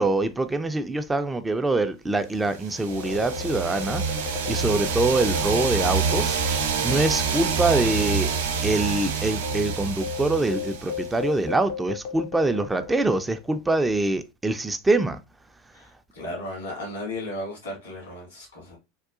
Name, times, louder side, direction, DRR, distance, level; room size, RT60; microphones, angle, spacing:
voice 1, 0.0-8.3 8.6-15.2, right 2 dB, 15° right, 0.4 m, -24 dB
sound 1, 2.6-11.3, right 6 dB, 75° right, 0.5 m, -27 dB
sound 2, 2.8-7.7 7.9-8.1 8.7-13.4, left 8 dB, 60° left, 0.5 m, -36 dB
voice 2, 15.7-18.8, left 1 dB, 80° left, 1.9 m, -35 dB
3.7 x 2.3 x 2.4 m
hypercardioid pair, 80°, 0 cm